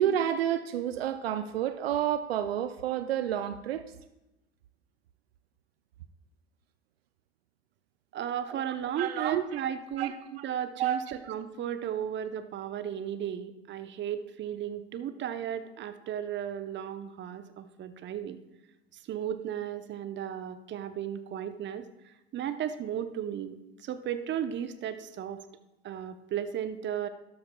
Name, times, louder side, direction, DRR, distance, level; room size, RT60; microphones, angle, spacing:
voice 1, 0.0-3.8 8.5-8.6 9.0-9.6 10.0-10.4 10.8-11.1, right 10 dB, 80° right, 0.5 m, -30 dB
voice 2, 8.1-10.1 10.4-18.4 19.1-21.9 22.3-25.4 25.8-27.1, right 9 dB, 40° right, 0.8 m, -35 dB
12.5 x 12.0 x 2.3 m
figure-of-eight pair, 70°, 30 cm